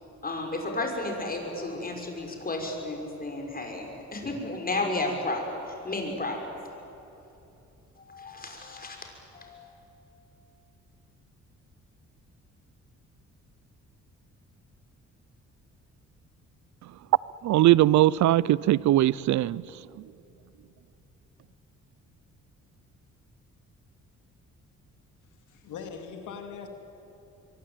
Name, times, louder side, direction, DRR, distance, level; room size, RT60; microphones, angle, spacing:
voice 1, 0.2-6.4 8.1-9.7, left 2 dB, 30° left, 3 dB, 6.3 m, -33 dB
voice 2, 17.4-19.6, right 14 dB, 70° right, 22 dB, 0.6 m, -20 dB
voice 3, 25.5-26.7, left 6 dB, 80° left, 5 dB, 2.8 m, -40 dB
24.0 x 23.0 x 9.2 m, 2.9 s
cardioid pair, 90°, 30 cm